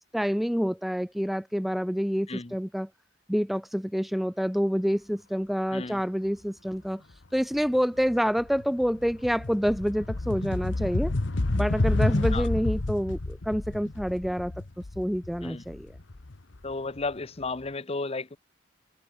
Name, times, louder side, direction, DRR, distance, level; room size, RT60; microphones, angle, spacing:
voice 1, 0.1-2.9 3.3-7.0 7.3-11.1 11.5-14.5 15.0-15.9, equal, ahead, 0.5 m, -27 dB
sound 1, 7.5-7.8 8.1-17.0, left 2 dB, 65° left, 1.1 m, -29 dB
voice 2, 16.6-18.4, left 3 dB, 30° left, 0.8 m, -33 dB
head